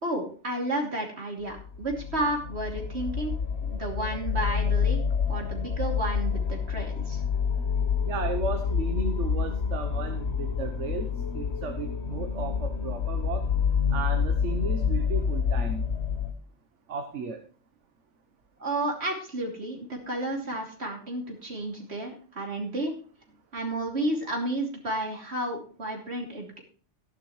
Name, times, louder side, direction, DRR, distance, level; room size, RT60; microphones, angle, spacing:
voice 1, 0.0-3.3 3.6-5.0 5.3-7.2 18.6-22.9 23.5-26.6, right 1 dB, 65° right, 1 dB, 3.1 m, -32 dB
sound 1, 1.5-16.3, left 6 dB, 65° left, 1.3 m, -28 dB
voice 2, 8.1-13.5 13.9-15.8 16.9-17.4, right 4 dB, 80° right, 6 dB, 1.3 m, -34 dB
14.5 x 11.0 x 3.1 m, 0.41 s
omnidirectional pair, 1.2 m